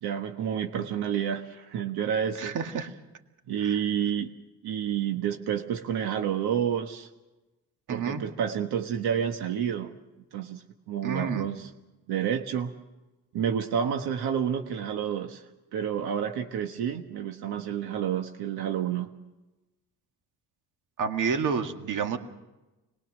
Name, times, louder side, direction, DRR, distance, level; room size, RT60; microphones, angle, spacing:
voice 1, 0.0-2.5 3.5-4.3 4.6-7.1 7.9-9.9 10.3-11.7 12.1-12.7 13.3-15.4 15.7-19.1, right 8 dB, 80° right, 5 dB, 1.5 m, -29 dB
voice 2, 2.4-2.9 3.6-3.8 7.9-8.2 11.0-11.5 21.0-22.2, right 6 dB, 55° right, 5 dB, 2.0 m, -29 dB
26.0 x 21.0 x 6.2 m, 1.0 s
cardioid pair, 145°, 38 cm